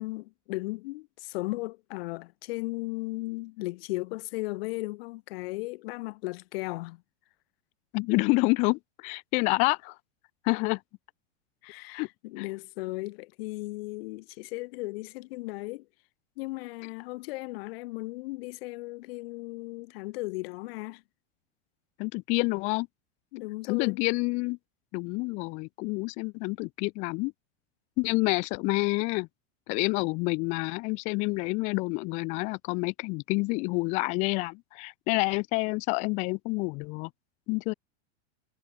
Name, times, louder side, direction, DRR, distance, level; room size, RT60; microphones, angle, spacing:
voice 1, 0.0-7.0 11.6-15.9 16.4-21.0 23.3-24.0, left 22 dB, 55° left, 2.6 m, -36 dB
voice 2, 7.9-9.9 10.4-10.8 11.9-12.1 22.0-22.9 23.7-24.6 24.9-27.3 28.0-29.3 29.7-37.1 37.5-37.7, left 27 dB, 20° left, 0.3 m, -28 dB
supercardioid pair, 160°, 36 cm